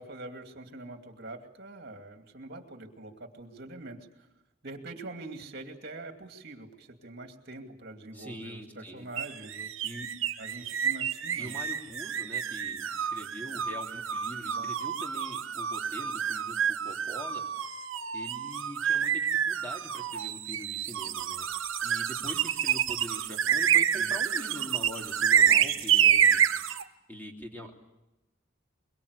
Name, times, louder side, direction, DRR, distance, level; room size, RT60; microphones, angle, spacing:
voice 1, 0.0-4.3 4.6-9.7 10.4-11.6 14.5-14.7 23.9-24.1, right 2 dB, 55° right, 6 dB, 2.6 m, -44 dB
voice 2, 8.1-9.0 9.8-10.1 11.4-17.7 18.1-26.4 27.1-27.7, equal, 10° left, 2 dB, 3.2 m, -43 dB
sound 1, 9.2-26.8, right 8 dB, 85° right, 1.0 m, -28 dB
24.0 x 23.0 x 8.3 m, 0.97 s
head